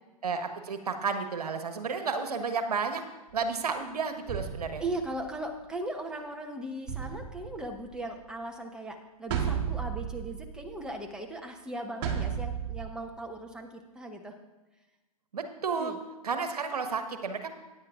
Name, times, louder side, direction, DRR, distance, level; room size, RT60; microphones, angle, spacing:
voice 1, 0.2-3.0 3.3-4.8 15.3-15.9 16.2-17.5, right 5 dB, 75° right, 7 dB, 1.3 m, -32 dB
sound 1, 3.3-3.6 4.3-5.7 6.9-8.3 9.3-10.8 12.0-12.9, right 8 dB, 40° right, 1.9 m, -34 dB
voice 2, 4.8-14.4 15.7-16.0, right 1 dB, 5° right, 3 dB, 1.1 m, -38 dB
16.5 x 9.7 x 2.5 m, 1.1 s
hypercardioid pair, 115°, 20 cm